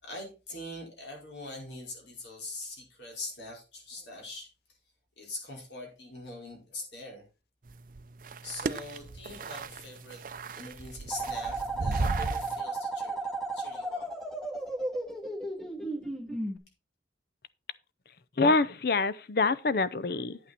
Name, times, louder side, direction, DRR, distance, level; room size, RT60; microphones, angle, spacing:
voice 1, 0.0-4.5 5.2-7.2 8.4-10.2 10.6-13.2 13.5-14.1, left 2 dB, 75° left, 5.1 m, -43 dB
sound 1, 7.7-12.6, right 3 dB, 45° right, 0.5 m, -35 dB
sound 2, 11.1-16.6, right 2 dB, ahead, 1.1 m, -34 dB
voice 2, 18.4-20.4, left 3 dB, 55° left, 0.6 m, -26 dB
9.3 x 8.7 x 4.3 m
head